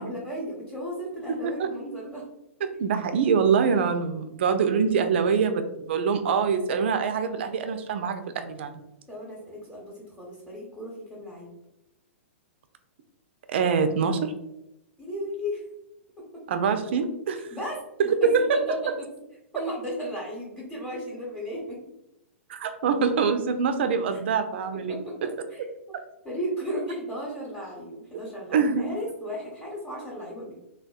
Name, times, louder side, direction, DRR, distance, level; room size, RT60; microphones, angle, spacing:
voice 1, 0.0-2.2 9.1-11.5 15.0-15.6 16.2-16.4 17.3-17.8 18.2-18.3 18.7-18.8 19.5-21.8 24.1-24.2 24.9-25.2 25.5-25.7 26.2-30.5, equal, 5° left, -6 dB, 0.9 m, -35 dB
voice 2, 2.6-8.8 13.5-14.3 16.5-17.5 18.0-18.6 22.5-25.0 25.9-26.0 28.5-28.9, right 6 dB, 55° right, 8 dB, 0.3 m, -24 dB
3.4 x 2.2 x 2.3 m, 0.89 s
figure-of-eight pair, 105°, 7 cm